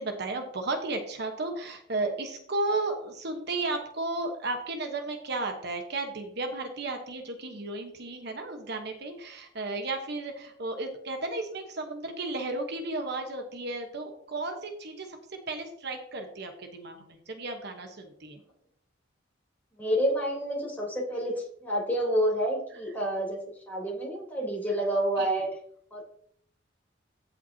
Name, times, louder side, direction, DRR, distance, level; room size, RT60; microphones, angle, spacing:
voice 1, 0.0-15.2 15.5-18.4 25.2-25.3, right 2 dB, 60° right, 4 dB, 1.2 m, -34 dB
voice 2, 19.8-25.5 25.9-26.0, equal, 10° left, -4 dB, 3.6 m, -29 dB
15.5 x 5.8 x 2.8 m, 0.66 s
head